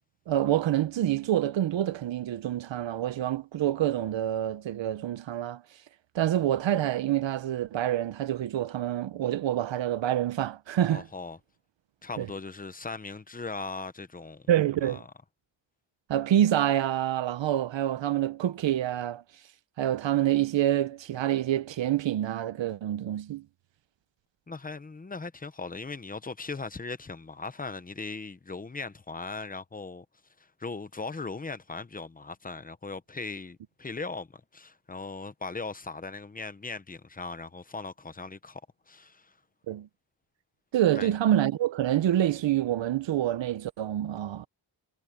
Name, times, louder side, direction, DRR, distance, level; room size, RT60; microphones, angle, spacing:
voice 1, 0.3-5.6 6.1-11.0 12.2-12.3 14.5-15.0 16.1-19.2 19.8-23.4 39.7-39.9 40.7-44.5, right 12 dB, 75° right, 0.7 m, -27 dB
voice 2, 10.9-11.4 12.0-14.5 14.8-15.1 24.5-30.0 30.4-38.6 38.9-39.3 40.9-41.1, left 3 dB, 20° left, 0.8 m, -39 dB
wide cardioid pair, 175°, 45 cm